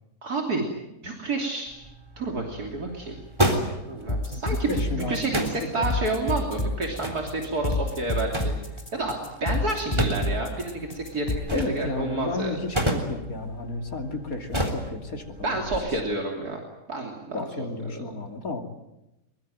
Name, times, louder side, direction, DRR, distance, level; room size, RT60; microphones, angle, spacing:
voice 1, 0.2-0.7 1.0-1.7 2.2-3.2 3.9-8.5 8.9-12.6 15.4-16.6 16.9-17.5 17.9-18.0, right 2 dB, 70° right, 1 dB, 3.6 m, -29 dB
hit copy machine, 1.7-15.8, right 1 dB, 15° right, 3.6 m, -33 dB
sound 1, 4.1-11.4, left 2 dB, 20° left, 3.6 m, -28 dB
voice 2, 4.3-5.5 11.5-15.7 17.3-18.6, left 3 dB, 60° left, 4 dB, 3.3 m, -32 dB
23.0 x 23.0 x 9.2 m, 0.93 s
omnidirectional pair, 1.7 m